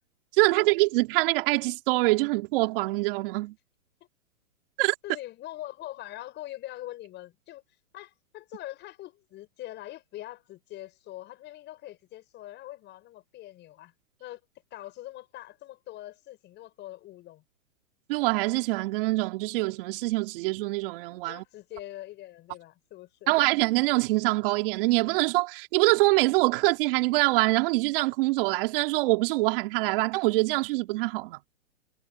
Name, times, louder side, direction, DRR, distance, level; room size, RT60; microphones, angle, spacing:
voice 1, 0.3-3.5 4.8-4.9 18.1-21.4 23.3-31.4, right 22 dB, 40° right, 2.9 m, -24 dB
voice 2, 5.0-7.6 7.9-13.9 14.2-14.4 14.7-17.4 21.3-23.3, left 15 dB, 25° left, 6.7 m, -43 dB
hypercardioid pair, 140°, 41 cm